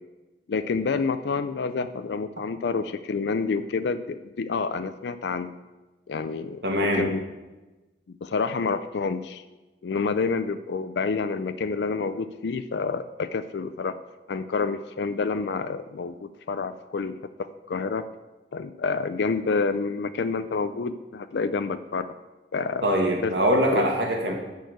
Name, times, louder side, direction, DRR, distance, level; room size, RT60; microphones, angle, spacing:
voice 1, 0.5-5.5 6.1-7.2 8.1-9.4 9.8-14.0 14.3-17.1 17.4-18.1 18.5-22.1 22.5-22.9 23.2-23.3 23.7-23.9, left 4 dB, 75° left, 11 dB, 0.4 m, -28 dB
voice 2, 6.6-7.1 22.8-24.3, equal, 75° right, 0 dB, 2.1 m, -23 dB
11.5 x 4.7 x 7.9 m, 1.1 s
head